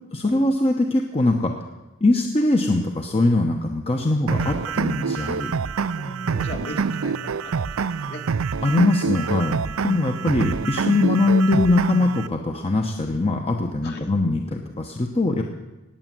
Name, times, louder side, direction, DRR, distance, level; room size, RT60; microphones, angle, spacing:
voice 1, 0.1-1.5 2.0-5.5 8.6-15.4, left 2 dB, 30° left, 3 dB, 1.0 m, -21 dB
sound 1, 4.3-12.3, right 5 dB, 70° right, 0.5 m, -26 dB
voice 2, 5.9-8.3 9.9-10.0 13.8-14.1, equal, 50° left, 2 dB, 2.3 m, -38 dB
19.0 x 8.3 x 7.6 m, 1.0 s
head